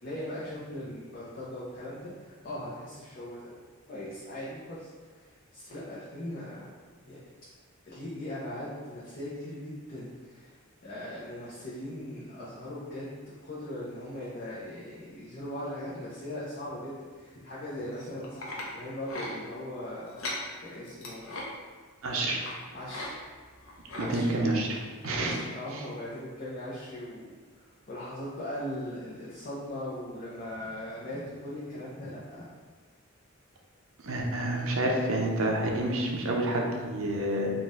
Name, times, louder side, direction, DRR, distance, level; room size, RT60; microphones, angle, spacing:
voice 1, 0.0-3.5 3.9-6.7 7.0-7.2 7.8-13.2 13.4-20.3 20.6-21.3 22.7-23.2 24.0-24.4 25.0-27.3 27.9-32.5, left 1 dB, 45° left, -9 dB, 0.7 m, -39 dB
sound 1, 17.9-18.7 19.1-19.3 20.1-20.4 20.9-21.4 22.4-22.6 22.9-23.1 23.4-24.1 24.7-24.8 25.3-25.4, left 2 dB, 70° left, 0.8 m, -38 dB
voice 2, 22.0-22.4 24.1-25.4 34.0-37.5, right 1 dB, 75° right, 0 dB, 0.6 m, -28 dB
4.1 x 2.5 x 3.6 m, 1.5 s
head